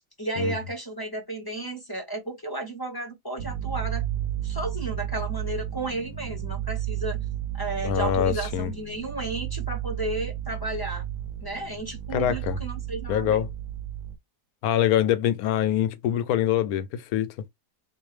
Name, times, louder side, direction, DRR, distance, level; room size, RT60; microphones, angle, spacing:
voice 1, 0.2-4.0 4.4-7.2 7.5-11.0 11.4-13.4, right 2 dB, 20° left, 0.8 m, -33 dB
sound 1, 3.4-14.2, right 11 dB, 70° right, 0.9 m, -33 dB
voice 2, 7.8-8.7 12.1-12.6 13.1-13.5 14.6-17.3, left 10 dB, 75° left, 1.1 m, -24 dB
3.7 x 2.6 x 3.2 m
omnidirectional pair, 1.7 m